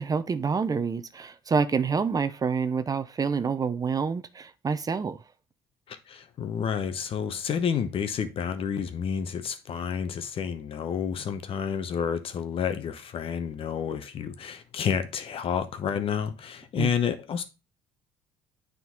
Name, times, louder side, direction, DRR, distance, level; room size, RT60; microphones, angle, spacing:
voice 1, 0.0-5.2 16.7-16.9, right 5 dB, 30° right, 0.6 m, -27 dB
voice 2, 5.9-17.4, left 7 dB, 50° left, 0.9 m, -30 dB
9.2 x 3.9 x 3.6 m
hypercardioid pair, 60°, 12 cm